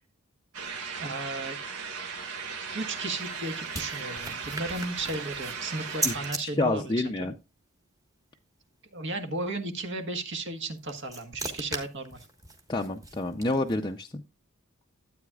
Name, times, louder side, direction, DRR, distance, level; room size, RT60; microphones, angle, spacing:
sound 1, 0.5-6.3, right 5 dB, 75° right, 1.9 m, -37 dB
voice 1, 1.0-1.6 2.7-7.3 8.9-12.2, right 2 dB, 55° right, 7 dB, 1.4 m, -34 dB
sound 2, 2.8-6.4 10.6-13.9, right 2 dB, 15° right, 1.4 m, -38 dB
voice 2, 6.4-7.3 12.7-14.2, left 2 dB, 20° left, 2 dB, 0.5 m, -28 dB
13.0 x 8.5 x 2.3 m, 0.27 s
head